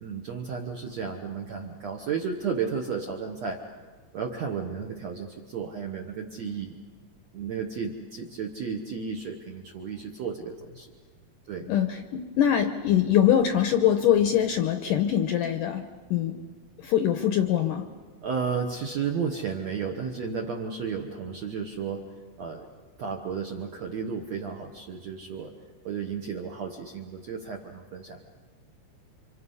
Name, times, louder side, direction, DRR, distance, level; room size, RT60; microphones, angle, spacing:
voice 1, 0.0-3.6 4.1-6.7 7.3-10.9 11.5-11.7 18.2-22.0 22.4-22.7 23.0-25.5 25.8-28.2, right 6 dB, 65° right, 2 dB, 1.7 m, -33 dB
voice 2, 11.7-16.4 16.8-17.9, left 10 dB, 75° left, 6 dB, 2.0 m, -23 dB
30.0 x 26.0 x 5.6 m, 1.5 s
omnidirectional pair, 4.8 m